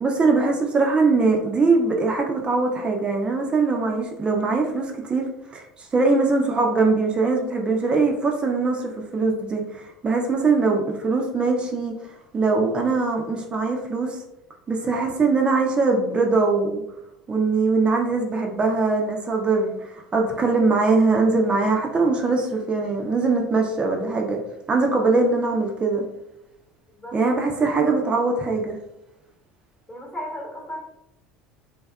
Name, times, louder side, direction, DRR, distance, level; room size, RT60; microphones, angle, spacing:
voice 1, 0.0-5.2 5.5-11.9 12.3-14.2 14.7-16.8 17.3-24.4 24.7-26.0 27.1-28.8, right 3 dB, 25° right, 2 dB, 0.4 m, -22 dB
voice 2, 26.9-27.5 29.9-30.8, equal, 20° left, -1 dB, 1.0 m, -36 dB
2.6 x 2.2 x 2.2 m, 0.85 s
hypercardioid pair, 75°, 4 cm